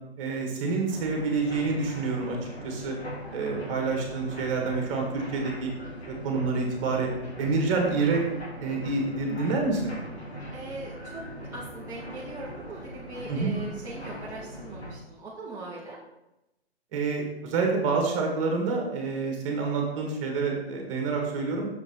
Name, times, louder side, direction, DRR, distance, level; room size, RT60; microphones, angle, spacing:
voice 1, 0.2-3.0 3.3-5.7 6.1-7.1 7.4-8.2 8.6-10.0 13.3-13.5 16.9-21.7, right 4 dB, 30° right, 1 dB, 1.7 m, -28 dB
sound 1, 0.9-14.9, equal, 75° left, 2.7 m, -40 dB
voice 2, 5.1-5.5 10.5-16.0, right 2 dB, 10° right, -7 dB, 0.8 m, -41 dB
6.8 x 5.0 x 4.3 m, 0.92 s
figure-of-eight pair, 125°, 32 cm